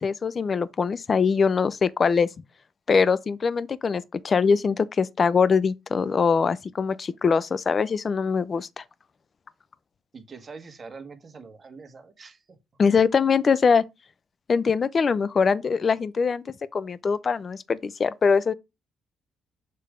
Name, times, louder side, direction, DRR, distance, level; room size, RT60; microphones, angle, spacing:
voice 1, 0.0-2.3 2.9-8.8 12.8-13.8 14.5-16.4 16.7-18.5, left 5 dB, 40° left, 0.5 m, -22 dB
voice 2, 10.1-12.6, right 4 dB, 40° right, 1.4 m, -44 dB
6.7 x 3.4 x 4.9 m
cardioid pair, 90°, 0 cm